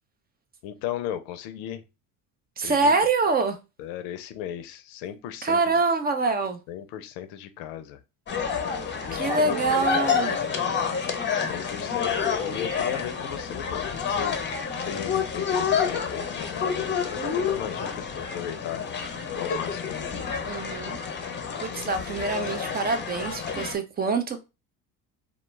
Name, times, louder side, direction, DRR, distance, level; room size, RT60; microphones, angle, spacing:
voice 1, 0.6-1.8 2.6-2.9 3.8-5.7 6.7-8.0 9.0-9.6 11.3-14.4 14.8-18.8 19.3-20.1, left 10 dB, 70° left, 0.6 m, -36 dB
voice 2, 2.6-3.6 5.4-6.6 9.1-10.4 20.5-21.0 21.6-24.4, right 3 dB, 25° right, 0.4 m, -25 dB
sound 1, 8.3-23.8, left 6 dB, 25° left, 0.6 m, -29 dB
2.2 x 2.0 x 3.1 m
hypercardioid pair, 75°, 44 cm